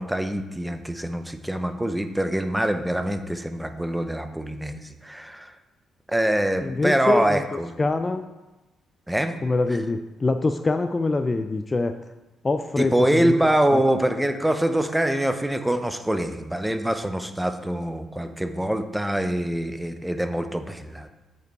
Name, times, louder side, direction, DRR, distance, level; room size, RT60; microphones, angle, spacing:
voice 1, 0.0-5.5 6.1-7.7 9.1-9.4 12.8-21.1, right 1 dB, 5° right, 8 dB, 0.7 m, -24 dB
voice 2, 6.6-8.3 9.4-12.0 12.4-13.8, left 3 dB, 25° left, 9 dB, 0.4 m, -25 dB
8.1 x 5.3 x 4.6 m, 1.1 s
cardioid pair, 90°, 0 cm